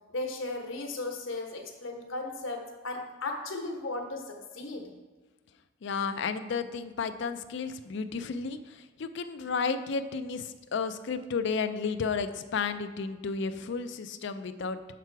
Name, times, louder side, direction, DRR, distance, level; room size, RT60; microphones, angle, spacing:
voice 1, 0.1-4.9, left 2 dB, 80° left, 2 dB, 1.2 m, -36 dB
voice 2, 5.8-14.8, left 5 dB, 65° left, 10 dB, 0.4 m, -32 dB
6.7 x 6.0 x 4.6 m, 1.3 s
head